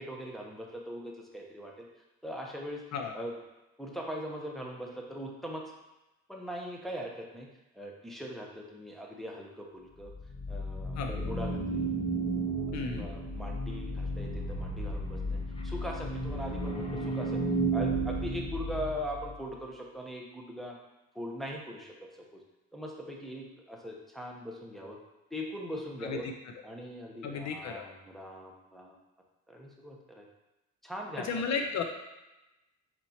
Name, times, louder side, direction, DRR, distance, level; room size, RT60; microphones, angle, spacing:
voice 1, 0.0-1.9 2.2-2.8 3.1-3.3 3.8-5.7 6.3-7.5 7.7-10.1 10.5-11.9 13.0-17.4 17.7-20.7 21.1-21.9 22.3-22.4 22.7-25.0 25.3-26.2 26.6-29.0 29.5-30.3 30.8-31.3, equal, ahead, -2 dB, 0.9 m, -40 dB
sound 1, 10.0-19.4, right 2 dB, 20° left, 0.6 m, -33 dB
voice 2, 12.7-13.1 26.0-26.3 27.2-27.9 31.2-31.8, left 5 dB, 65° left, 4 dB, 0.6 m, -34 dB
4.4 x 4.2 x 2.8 m, 0.99 s
cardioid pair, 90°, 30 cm